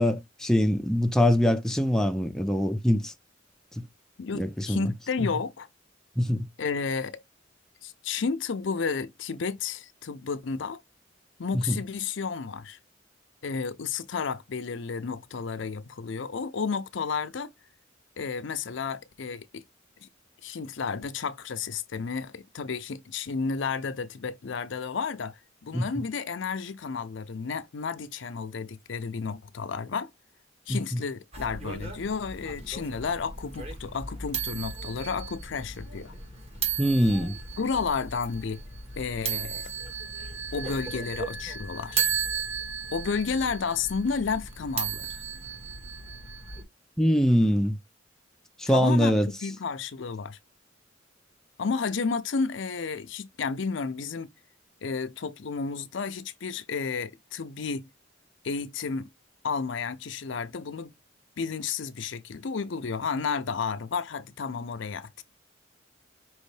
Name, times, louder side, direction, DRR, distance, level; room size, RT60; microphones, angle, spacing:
voice 1, 0.0-3.1 3.8-3.9 4.3-4.9 6.2-6.4 11.5-11.8 25.7-25.9 30.7-31.0 36.8-37.4 47.0-47.8 48.6-49.3, equal, 5° left, 0.5 m, -23 dB
voice 2, 4.2-5.7 6.6-7.2 7.8-10.8 11.4-12.8 13.4-17.5 18.2-19.6 20.0-20.1 20.4-30.1 30.7-36.1 37.6-38.6 39.0-39.7 40.5-42.1 42.9-45.2 48.7-50.4 51.6-54.3 54.8-57.9 58.4-59.1 59.4-60.9 61.4-65.2, left 5 dB, 65° left, 0.5 m, -32 dB
sound 1, 31.3-46.6, right 6 dB, 30° right, 1.6 m, -35 dB
5.5 x 3.0 x 3.2 m
head